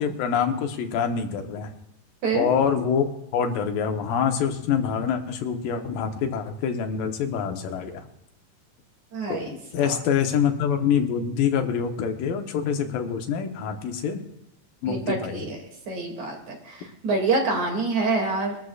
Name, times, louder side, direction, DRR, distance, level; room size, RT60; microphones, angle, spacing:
voice 1, 0.0-1.7 2.3-3.1 3.3-8.1 9.3-9.4 9.7-14.2 14.8-15.4, left 7 dB, 85° left, 5 dB, 2.9 m, -25 dB
voice 2, 9.1-9.9 14.9-15.6 15.9-18.6, right 3 dB, 55° right, 1 dB, 3.6 m, -26 dB
23.5 x 13.0 x 2.4 m, 0.84 s
omnidirectional pair, 3.9 m